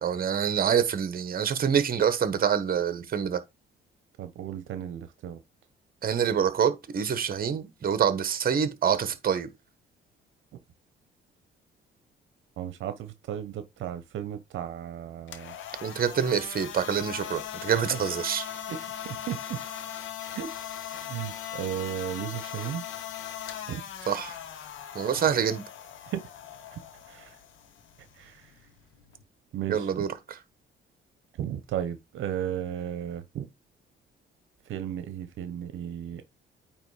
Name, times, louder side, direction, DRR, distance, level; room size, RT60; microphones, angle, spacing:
voice 1, 0.0-3.4 6.0-9.5 15.8-18.5 24.1-24.4 24.9-25.6 29.7-30.4, right 8 dB, 45° right, 1.2 m, -26 dB
voice 2, 4.2-5.4 12.6-15.5 18.7-18.8 19.0-19.6 20.2-20.5 20.9-22.8 23.7-23.8 26.1-26.2 26.7-26.8 27.1-27.4 28.2-28.4 29.5-29.9 31.4-33.5 34.7-36.2, right 10 dB, 75° right, 0.9 m, -34 dB
sound 1, 15.2-29.2, left 10 dB, 80° left, 1.2 m, -40 dB
8.9 x 3.2 x 4.9 m
cardioid pair, 90°, 20 cm